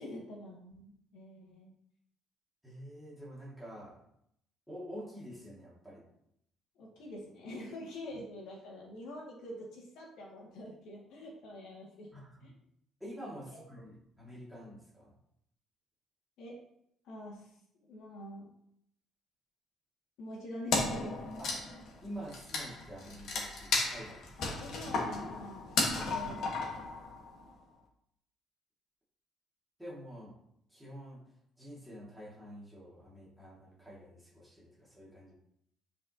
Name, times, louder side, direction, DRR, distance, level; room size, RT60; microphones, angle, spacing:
voice 1, 0.0-1.7 6.8-12.1 12.4-12.5 16.4-16.6 17.0-17.5 17.9-18.5 20.2-21.4 24.4-26.5, left 1 dB, 70° left, -3 dB, 2.3 m, -45 dB
voice 2, 2.6-4.0 4.7-6.0 12.1-12.5 13.0-15.1 21.4-21.5 22.0-24.4 29.8-30.4 30.7-31.2 31.6-35.3, equal, ahead, -7 dB, 2.4 m, -47 dB
Wood, 20.7-27.4, left 3 dB, 55° left, 1.6 m, -34 dB
9.6 x 5.1 x 3.0 m, 0.73 s
cardioid pair, 165°, 0 cm